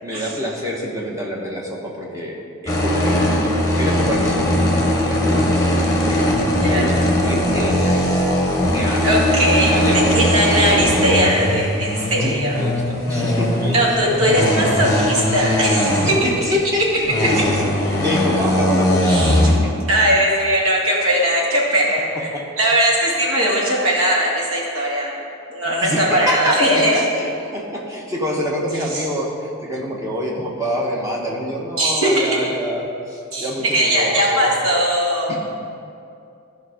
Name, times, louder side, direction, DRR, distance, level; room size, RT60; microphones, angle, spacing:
voice 1, 0.0-2.4 2.6-4.7 5.0-6.2 6.6-8.3 8.7-9.1 9.5-10.2 10.5-11.0 12.2-14.1 16.0-17.7 18.0-19.7 22.1-22.4 25.6-34.5 35.3-35.4, equal, 15° right, -2 dB, 1.1 m, -26 dB
sound 1, 2.7-16.6 16.9-19.6, left 1 dB, 15° left, 1.1 m, -19 dB
voice 2, 9.0-9.7 10.1-12.6 13.7-16.3 19.1-19.5 19.9-22.0 22.6-25.2 25.5-26.9 31.8-32.4 33.3-35.4, right 1 dB, 85° right, -4 dB, 2.1 m, -19 dB
12.0 x 5.3 x 5.0 m, 2.5 s
head